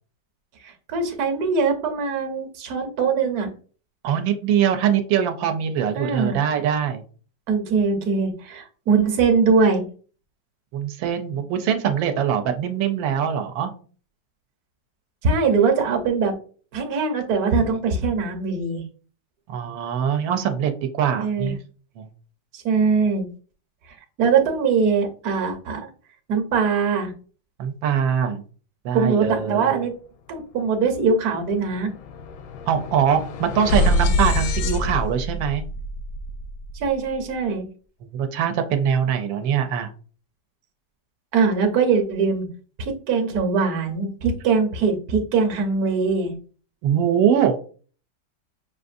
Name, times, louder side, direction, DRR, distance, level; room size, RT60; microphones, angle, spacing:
voice 1, 0.6-3.5 5.9-6.4 7.5-9.8 15.2-16.3 16.7-18.8 21.2-21.5 22.5-23.3 24.2-25.9 26.3-27.1 28.9-29.9 30.3-31.9 36.7-37.7 41.3-42.5 42.8-46.3, right 5 dB, 60° right, 4 dB, 1.2 m, -22 dB
voice 2, 4.0-7.0 10.7-13.7 19.5-21.6 22.0-22.1 27.6-28.4 28.8-29.7 32.7-35.6 38.1-39.9 46.8-47.6, right 8 dB, 85° right, 6 dB, 1.3 m, -22 dB
sound 1, 30.5-30.7 31.0-37.2, left 2 dB, 80° left, 1.2 m, -26 dB
6.3 x 2.5 x 2.5 m, 0.41 s
omnidirectional pair, 2.0 m